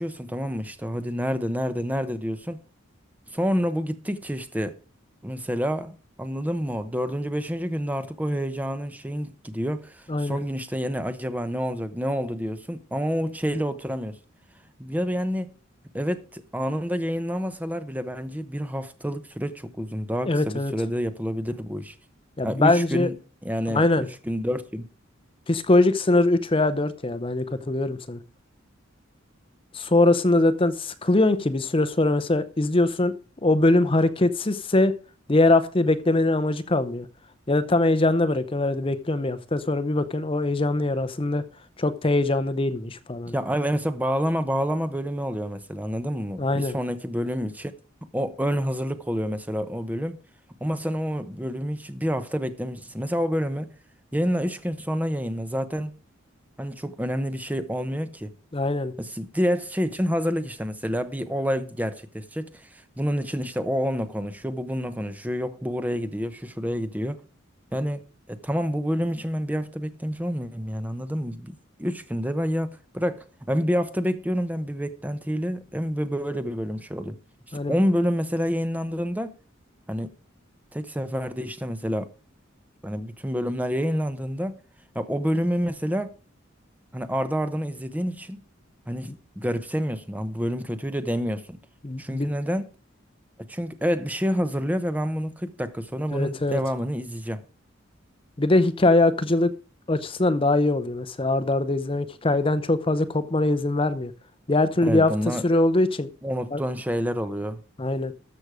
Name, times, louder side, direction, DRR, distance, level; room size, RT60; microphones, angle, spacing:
voice 1, 0.0-2.6 3.3-4.8 5.2-14.2 14.8-15.5 15.9-21.9 22.4-23.2 23.4-24.9 43.3-47.7 48.1-50.2 50.6-53.7 54.1-55.9 56.6-58.3 59.0-67.2 67.7-68.0 68.3-77.2 77.7-79.3 79.9-80.1 80.7-82.1 82.8-84.6 84.9-86.1 86.9-88.4 88.9-91.6 92.0-92.7 93.5-97.4 104.8-105.4 106.2-107.6, equal, 10° right, 0.8 m, -28 dB
voice 2, 20.2-20.7 22.4-23.1 23.7-24.1 25.5-28.2 29.7-33.1 33.4-34.9 35.3-37.1 37.5-41.4 41.8-43.3 46.4-46.7 58.5-58.9 77.5-77.7 91.8-92.3 96.1-96.6 98.4-99.5 99.9-104.1 104.5-105.1 105.4-106.1 106.5-106.6 107.8-108.1, left 2 dB, 25° left, 0.7 m, -22 dB
13.5 x 6.3 x 4.9 m
head